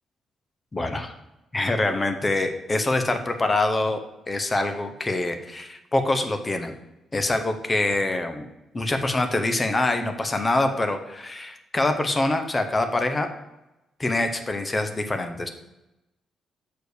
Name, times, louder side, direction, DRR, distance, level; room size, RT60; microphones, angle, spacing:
voice 1, 0.7-1.1 1.5-4.0 4.3-6.7 7.1-8.5 8.7-13.3 14.0-15.5, left 2 dB, 15° left, 7 dB, 0.7 m, -25 dB
6.4 x 4.9 x 6.5 m, 0.96 s
cardioid pair, 175°, 0 cm